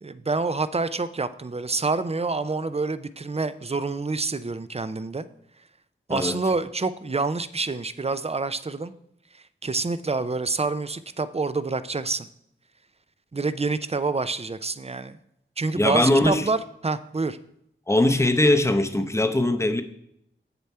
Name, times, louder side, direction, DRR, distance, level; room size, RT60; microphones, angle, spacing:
voice 1, 0.0-5.3 6.1-8.9 9.6-12.3 13.3-15.2 15.6-16.6 16.8-17.4, right 3 dB, 30° right, 14 dB, 0.5 m, -27 dB
voice 2, 15.7-16.5 17.9-19.8, left 1 dB, 15° left, 8 dB, 0.7 m, -21 dB
7.8 x 6.9 x 4.3 m, 0.78 s
wide cardioid pair, 50°, 21 cm